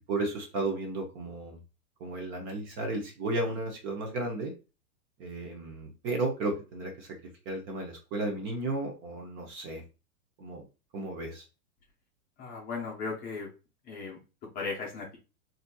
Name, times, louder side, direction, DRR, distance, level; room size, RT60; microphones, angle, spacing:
voice 1, 0.1-1.6 2.0-4.5 5.2-7.2 7.5-9.8 10.4-10.7 10.9-11.4, right 2 dB, 25° right, 1 dB, 0.7 m, -33 dB
voice 2, 12.4-13.5 13.9-14.2 14.5-15.2, left 4 dB, 20° left, -1 dB, 0.7 m, -36 dB
4.1 x 2.7 x 2.2 m, 0.31 s
hypercardioid pair, 140°, 46 cm